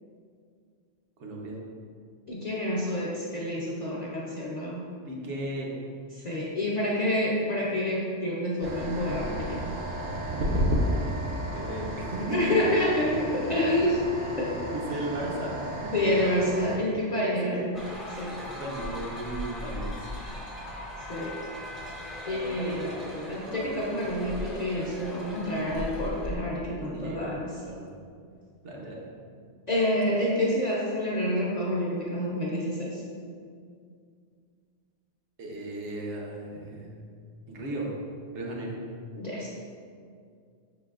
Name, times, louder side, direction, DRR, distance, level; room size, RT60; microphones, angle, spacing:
voice 1, 1.2-1.6 5.1-5.7 11.5-12.5 14.7-15.5 15.8-15.9 17.3-17.8 18.5-20.1 26.8-27.2 27.6-27.9 28.6-29.1 35.4-37.0 37.5-37.9 38.3-38.8, right 1 dB, 75° right, -2 dB, 1.0 m, -35 dB
voice 2, 2.3-4.8 6.1-9.6 12.3-14.0 14.4-14.6 15.9-17.8 18.2-18.4 21.1-21.4 22.2-27.5 29.7-33.0 39.2-39.5, left 1 dB, 45° left, -5 dB, 0.5 m, -28 dB
sound 1, 8.6-16.8, equal, 55° right, 0.5 m, -32 dB
sound 2, 17.7-26.4, left 1 dB, ahead, 0.5 m, -38 dB
5.6 x 3.9 x 2.4 m, 2.2 s
omnidirectional pair, 1.2 m